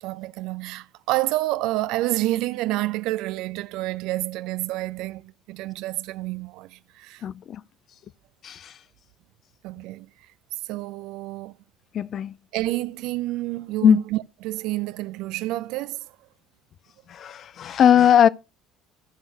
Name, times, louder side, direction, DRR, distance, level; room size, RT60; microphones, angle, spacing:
voice 1, 0.0-7.2 9.6-10.1 10.7-11.5 12.5-16.1, right 17 dB, 65° right, 0.5 m, -29 dB
voice 2, 7.2-7.6 8.4-8.6 11.9-12.3 13.8-14.0 17.1-18.3, left 9 dB, 50° left, 0.5 m, -18 dB
15.0 x 6.1 x 3.2 m
hypercardioid pair, 60°, 0 cm